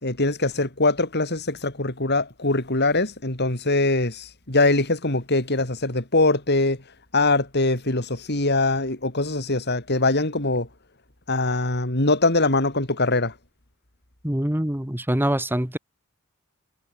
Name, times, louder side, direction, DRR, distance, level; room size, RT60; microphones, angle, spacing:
voice 1, 0.0-6.8 7.1-10.7 11.3-13.3, left 2 dB, 50° left, 4.8 m, -22 dB
voice 2, 14.2-15.8, right 1 dB, 10° right, 1.7 m, -24 dB
head